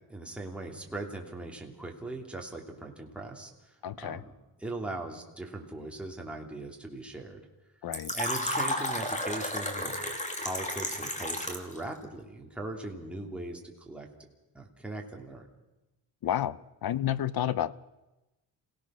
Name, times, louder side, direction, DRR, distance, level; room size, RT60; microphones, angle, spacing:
voice 1, 0.1-4.3 4.6-7.4 8.1-10.0 10.4-14.1 14.5-15.5, right 2 dB, 5° right, 0 dB, 2.9 m, -39 dB
voice 2, 3.8-4.2 7.8-8.2 16.2-17.7, left 11 dB, 55° left, 18 dB, 0.8 m, -30 dB
Fill (with liquid), 7.9-11.8, left 1 dB, 15° left, 2.5 m, -32 dB
28.0 x 17.5 x 6.2 m, 1.0 s
cardioid pair, 115°, 44 cm